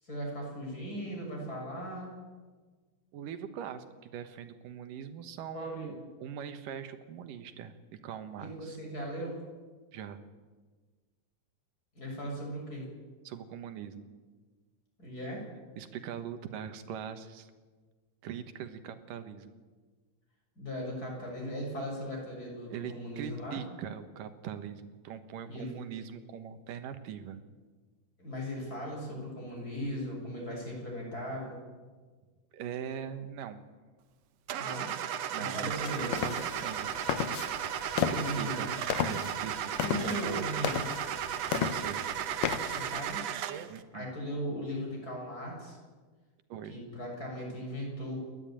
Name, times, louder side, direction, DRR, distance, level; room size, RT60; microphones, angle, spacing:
voice 1, 0.0-2.2 5.5-6.1 8.4-9.4 12.0-12.9 15.0-15.4 20.6-23.6 25.5-25.7 28.2-31.6 34.5-34.9 35.3-36.2 38.0-38.7 39.8-40.9 42.7-43.2 43.9-45.8 46.7-48.2, equal, 25° left, -1 dB, 7.1 m, -38 dB
voice 2, 3.1-8.8 9.9-10.2 13.2-14.1 15.8-17.5 18.2-19.5 22.7-27.4 32.5-33.7 35.3-36.9 38.1-38.7 39.0-39.7 40.0-40.4 41.5-42.1 43.7-44.1 46.5-46.8, right 8 dB, 80° right, 9 dB, 2.9 m, -41 dB
Car / Engine starting, 34.5-43.8, right 10 dB, 65° right, 1.8 m, -35 dB
sound 1, 35.7-43.2, left 9 dB, 75° left, 2.6 m, -35 dB
29.0 x 12.0 x 9.0 m, 1.4 s
omnidirectional pair, 3.8 m